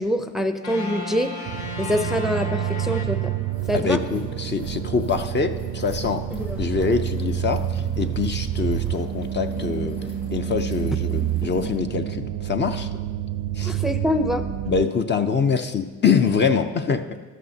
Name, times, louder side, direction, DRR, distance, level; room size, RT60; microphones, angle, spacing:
voice 1, 0.0-1.3 1.8-3.3 3.7-4.0 6.3-6.6 13.7-14.4, equal, ahead, 7 dB, 0.6 m, -25 dB
sound 1, 0.6-3.9, left 3 dB, 70° left, 1.4 m, -35 dB
sound 2, 1.5-14.9, right 11 dB, 65° right, 0.5 m, -28 dB
sound 3, 2.9-3.0 3.3-11.8, left 2 dB, 85° left, 3.3 m, -40 dB
voice 2, 3.7-6.2 6.6-10.0 10.3-12.9 13.6-13.7 14.7-17.0, left 5 dB, 35° left, 7 dB, 0.7 m, -24 dB
13.5 x 12.0 x 2.8 m, 1.4 s
cardioid pair, 90°, 30 cm